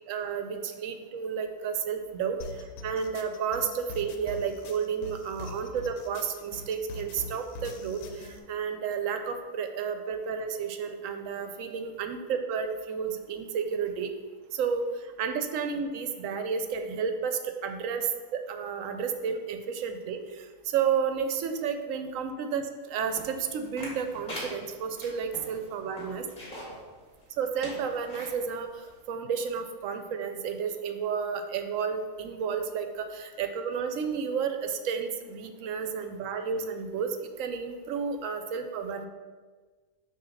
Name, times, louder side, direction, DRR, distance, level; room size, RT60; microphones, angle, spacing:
voice 1, 0.1-14.1 14.5-22.6 22.9-26.2 27.4-39.1, right 6 dB, 70° right, 7 dB, 0.9 m, -32 dB
sound 1, 2.4-8.4, left 3 dB, 85° left, 1.1 m, -43 dB
sound 2, 23.1-26.8 27.2-27.3 27.6-28.3 28.9-29.0, equal, 30° left, 1.6 m, -42 dB
6.7 x 2.7 x 5.6 m, 1.4 s
omnidirectional pair, 1.5 m